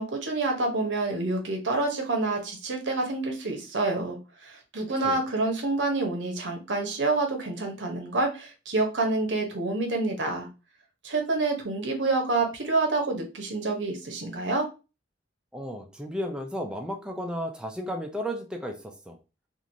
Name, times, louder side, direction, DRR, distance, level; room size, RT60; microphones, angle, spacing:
voice 1, 0.0-10.5 11.0-14.7, right 3 dB, 80° right, 3 dB, 0.8 m, -28 dB
voice 2, 15.5-19.2, equal, 5° right, 2 dB, 0.4 m, -34 dB
3.0 x 2.5 x 2.6 m, 0.31 s
head